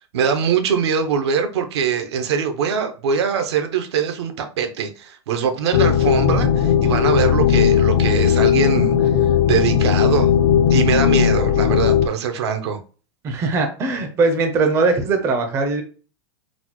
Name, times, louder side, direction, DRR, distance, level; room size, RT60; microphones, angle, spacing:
voice 1, 0.0-9.1 9.4-10.3 10.7-12.8, right 7 dB, 75° right, 0.7 m, -22 dB
sound 1, 5.7-12.1, left 8 dB, 45° left, 0.4 m, -17 dB
voice 2, 13.2-15.8, right 3 dB, 20° right, 0.4 m, -20 dB
4.1 x 2.0 x 2.9 m
supercardioid pair, 155°, 14 cm